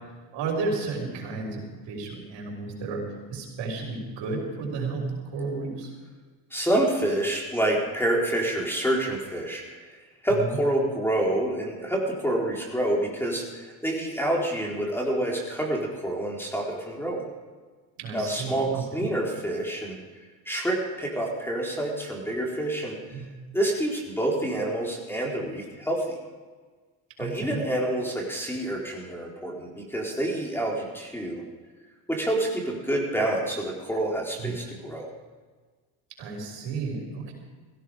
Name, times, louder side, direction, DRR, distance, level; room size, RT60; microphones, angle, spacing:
voice 1, 0.3-3.0 3.3-5.9 10.3-10.6 18.0-19.1 23.1-23.2 27.2-27.6 34.4-34.6 36.2-37.3, right 4 dB, 65° right, -1 dB, 5.9 m, -32 dB
voice 2, 6.5-10.0 10.2-17.2 18.1-20.0 20.5-23.0 23.5-26.2 27.2-31.4 32.1-35.1, right 1 dB, 5° left, -2 dB, 4.0 m, -27 dB
16.5 x 16.0 x 5.0 m, 1.4 s
supercardioid pair, 90°, 47 cm